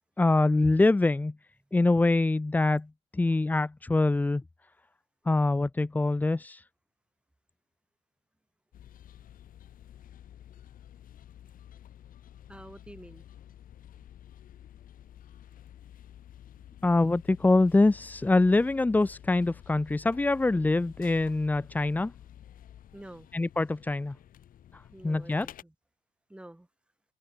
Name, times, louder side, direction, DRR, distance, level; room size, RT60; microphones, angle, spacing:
voice 1, 0.2-1.3 1.7-2.9 3.1-4.4 5.3-6.6 16.8-22.1 23.3-24.1 25.0-25.5, left 2 dB, 10° left, 0.5 m, -24 dB
sound 1, 8.7-25.6, left 11 dB, 55° left, 1.9 m, -51 dB
voice 2, 12.5-13.3 22.9-23.3 24.9-25.7 26.3-26.7, right 1 dB, 5° right, 6.3 m, -48 dB
cardioid pair, 110°, 17 cm